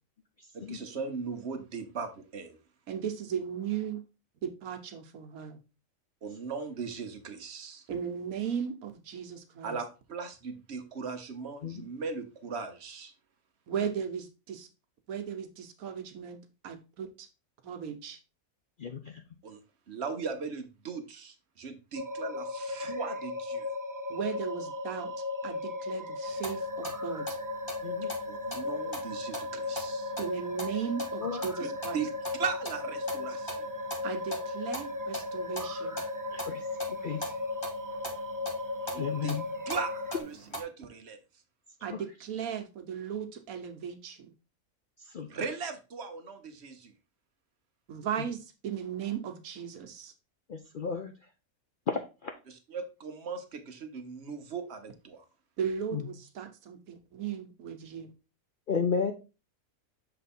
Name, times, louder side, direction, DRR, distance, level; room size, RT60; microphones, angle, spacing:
voice 1, 0.5-2.6 6.2-7.8 9.6-13.1 19.4-19.6 19.9-23.7 28.3-30.1 31.9-33.7 38.9-39.4 39.7-41.2 45.3-46.9 52.5-55.2, right 5 dB, 50° right, 6 dB, 1.1 m, -38 dB
voice 2, 2.9-4.0 4.4-5.6 7.9-9.8 13.7-14.7 15.1-16.4 16.6-17.3 17.6-18.2 24.1-25.1 25.4-27.4 30.2-32.1 34.0-35.9 41.8-44.3 47.9-50.1 55.6-58.1, right 8 dB, 80° right, 6 dB, 1.3 m, -36 dB
voice 3, 18.8-19.2 27.8-28.1 31.2-31.4 36.3-36.6 36.9-37.2 39.0-39.5 41.9-42.0 45.1-45.3 50.5-51.1 51.9-52.3 55.9-56.0 58.7-59.1, left 6 dB, 60° left, 5 dB, 0.5 m, -33 dB
sound 1, 21.9-40.2, left 2 dB, 30° right, 0.3 m, -36 dB
sound 2, 26.3-40.6, right 1 dB, 20° left, 1.4 m, -43 dB
6.7 x 3.4 x 4.2 m, 0.30 s
omnidirectional pair, 1.5 m